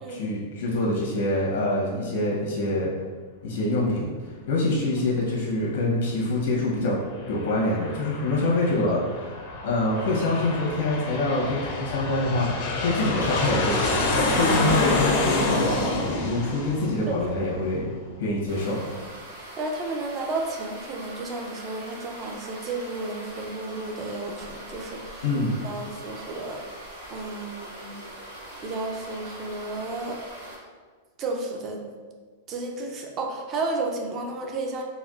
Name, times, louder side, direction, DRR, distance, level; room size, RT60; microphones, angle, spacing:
voice 1, 0.1-2.9 3.4-4.1 4.5-7.0 7.3-9.0 9.6-12.5 12.8-17.9 18.2-18.8 25.2-25.5, left 2 dB, 75° left, -3 dB, 0.8 m, -25 dB
Aircraft, 7.1-18.2, left 2 dB, 45° left, 0.5 m, -28 dB
sound 1, 18.5-30.5, right 1 dB, 85° right, 1.4 m, -42 dB
voice 2, 19.6-25.2 25.6-26.6 27.1-27.9 28.6-30.2 31.2-31.9 32.5-34.8, right 3 dB, 25° right, 2 dB, 0.4 m, -32 dB
4.1 x 2.2 x 2.3 m, 1.5 s
supercardioid pair, 165°, 0 cm